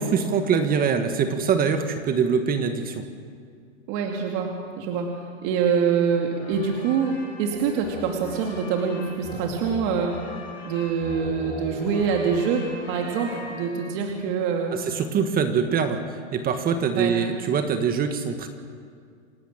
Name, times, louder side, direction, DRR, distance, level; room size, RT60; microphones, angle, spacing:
voice 1, 0.0-3.0 14.7-16.0 16.3-18.5, right 6 dB, 25° right, 7 dB, 1.5 m, -23 dB
voice 2, 3.9-5.1 5.4-10.3 10.6-14.8 16.9-17.1, right 6 dB, 45° right, 1 dB, 2.6 m, -25 dB
sound 1, 6.3-14.2, left 2 dB, 25° left, 6.7 m, -39 dB
27.5 x 12.5 x 8.8 m, 2.2 s
hypercardioid pair, 135°, 37 cm